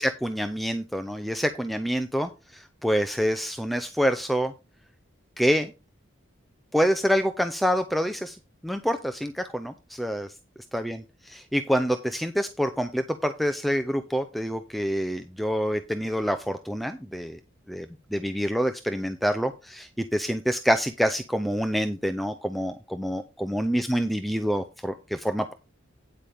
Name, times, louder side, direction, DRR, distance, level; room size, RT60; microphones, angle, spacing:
voice 1, 0.0-4.5 5.4-5.7 6.7-8.4 8.6-10.3 10.7-17.4 17.7-17.9 18.1-25.5, equal, ahead, 8 dB, 0.5 m, -27 dB
9.2 x 8.3 x 3.5 m, 0.28 s
head